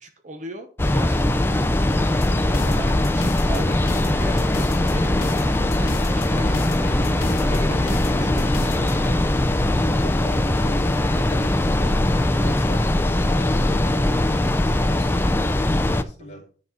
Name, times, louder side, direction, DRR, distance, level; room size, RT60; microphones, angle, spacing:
voice 1, 0.0-6.6 7.0-9.3 16.2-16.4, right 1 dB, 40° right, 6 dB, 0.8 m, -40 dB
sound 1, 0.8-16.0, left 1 dB, 10° left, 0.4 m, -21 dB
sound 2, 2.1-9.1, left 2 dB, 50° left, 1.8 m, -33 dB
voice 2, 10.0-16.4, equal, 35° left, -1 dB, 2.3 m, -41 dB
10.0 x 4.2 x 4.9 m, 0.41 s
head